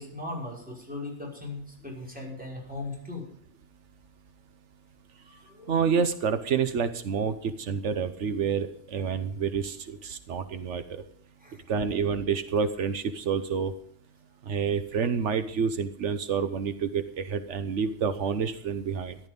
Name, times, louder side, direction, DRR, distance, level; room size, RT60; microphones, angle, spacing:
voice 1, 0.0-3.2 5.1-5.8 11.4-11.6 14.6-14.7, left 2 dB, 5° right, -3 dB, 5.7 m, -38 dB
voice 2, 5.7-11.0 11.7-13.7 14.5-19.2, right 6 dB, 85° right, 10 dB, 1.3 m, -28 dB
14.5 x 11.5 x 5.3 m, 0.67 s
omnidirectional pair, 1.2 m